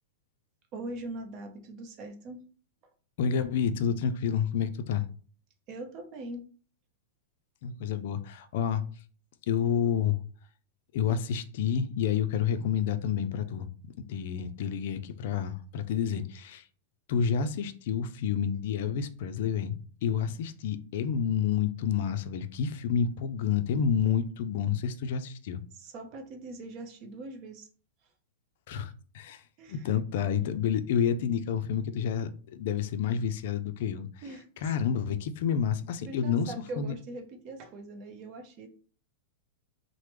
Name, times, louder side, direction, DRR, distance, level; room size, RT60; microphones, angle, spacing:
voice 1, 0.7-2.4 5.7-6.4 25.7-27.7 29.6-29.8 34.2-34.5 36.1-38.7, right 2 dB, 35° right, 0.6 m, -41 dB
voice 2, 3.2-5.1 7.6-8.8 9.5-10.2 10.9-13.7 14.1-16.6 17.1-25.6 28.7-29.4 29.7-34.1 34.6-36.9, left 7 dB, 60° left, 0.4 m, -29 dB
3.0 x 2.0 x 3.3 m
supercardioid pair, 155°, 0 cm